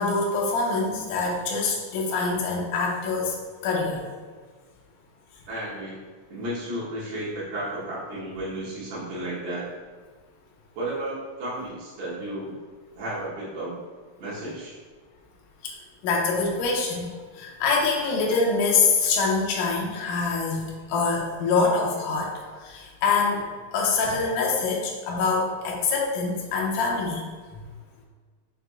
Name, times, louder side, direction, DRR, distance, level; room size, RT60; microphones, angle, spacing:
voice 1, 0.0-3.4 3.6-4.0 15.6-15.7 16.0-17.1 17.3-22.3 22.6-23.5 23.7-27.3, left 4 dB, 75° left, -2 dB, 1.9 m, -25 dB
voice 2, 5.5-6.0 6.3-9.7 10.7-12.6 12.9-13.8 14.2-14.8, right 1 dB, 85° right, -8 dB, 1.2 m, -33 dB
5.9 x 3.0 x 2.3 m, 1.5 s
omnidirectional pair, 4.2 m